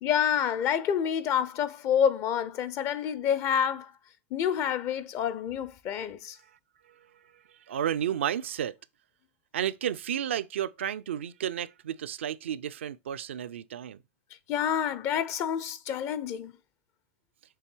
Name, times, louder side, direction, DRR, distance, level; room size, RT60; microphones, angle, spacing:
voice 1, 0.0-3.9 4.3-6.4 14.5-16.5, left 8 dB, 45° left, 0.7 m, -28 dB
voice 2, 7.7-8.7 9.5-14.0, right 10 dB, 75° right, 0.4 m, -32 dB
6.8 x 3.3 x 4.5 m
hypercardioid pair, 95°, 7 cm